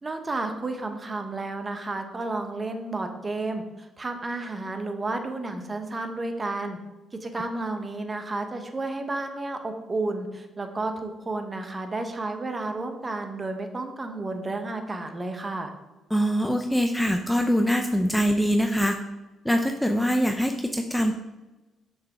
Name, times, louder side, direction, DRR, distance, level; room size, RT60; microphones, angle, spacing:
voice 1, 0.0-6.8 7.2-15.7, right 2 dB, 25° right, 5 dB, 1.0 m, -32 dB
voice 2, 16.1-19.0 19.4-21.1, equal, 5° left, 5 dB, 0.5 m, -23 dB
6.3 x 6.0 x 3.6 m, 1.1 s
cardioid pair, 90°, 0 cm